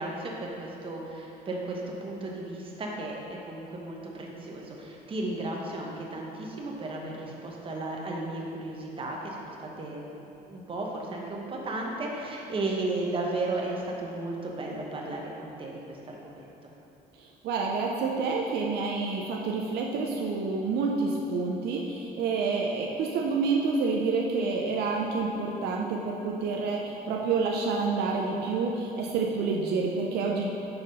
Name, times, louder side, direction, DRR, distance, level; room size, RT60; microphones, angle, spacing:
voice 1, 0.0-10.1 10.5-16.7, right 2 dB, 30° right, -1 dB, 1.0 m, -34 dB
voice 2, 17.2-30.5, right 4 dB, 75° right, -1 dB, 0.6 m, -28 dB
5.7 x 4.0 x 5.3 m, 2.9 s
cardioid pair, 110°, 17 cm